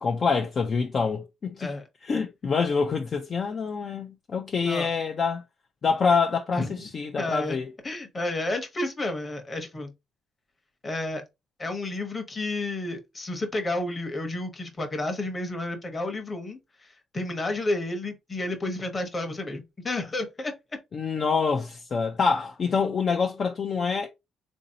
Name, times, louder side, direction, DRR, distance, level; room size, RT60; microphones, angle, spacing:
voice 1, 0.0-1.7 2.0-5.4 5.8-7.7 20.9-24.1, left 5 dB, 35° left, 0.4 m, -26 dB
voice 2, 7.2-7.6 7.8-9.9 10.8-11.2 11.6-16.9 17.1-20.5, left 2 dB, 20° left, 0.8 m, -31 dB
3.9 x 2.6 x 2.7 m
cardioid pair, 145°, 0 cm